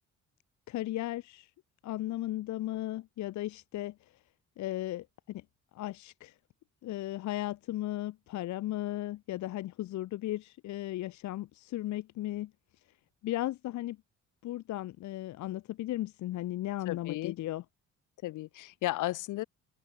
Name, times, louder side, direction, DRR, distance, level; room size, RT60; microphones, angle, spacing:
voice 1, 0.7-1.5 1.8-4.0 4.6-5.4 5.7-6.4 6.8-12.5 13.2-14.0 14.4-17.6, left 15 dB, 70° left, 0.7 m, -36 dB
voice 2, 16.9-17.4 18.2-19.4, left 17 dB, 90° left, 1.5 m, -34 dB
open air
cardioid pair, 90°, 30 cm